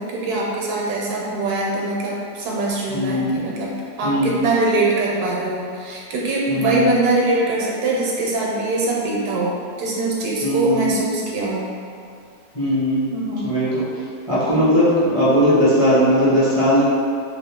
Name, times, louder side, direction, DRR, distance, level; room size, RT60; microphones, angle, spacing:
voice 1, 0.0-11.7 13.1-13.5, right 2 dB, 75° right, -4 dB, 1.1 m, -23 dB
voice 2, 2.9-3.5 4.0-4.4 6.5-6.9 10.4-10.9 12.5-13.1 13.4-13.8 14.3-16.8, equal, 30° left, -12 dB, 0.5 m, -18 dB
2.9 x 2.6 x 3.5 m, 2.3 s
omnidirectional pair, 1.7 m